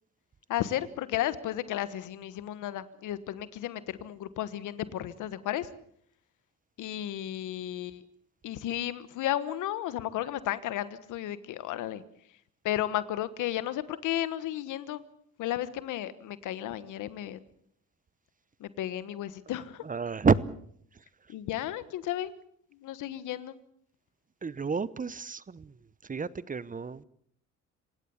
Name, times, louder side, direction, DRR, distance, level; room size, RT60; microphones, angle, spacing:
voice 1, 0.5-5.7 6.8-8.0 8.4-12.0 12.6-15.0 15.4-17.4 18.6-19.8 21.3-22.3 22.8-23.6, left 12 dB, 85° left, 1.4 m, -33 dB
voice 2, 19.8-20.4 24.4-25.7 26.0-27.0, right 5 dB, 25° right, 0.9 m, -29 dB
26.5 x 17.0 x 7.2 m
cardioid pair, 90°, 30 cm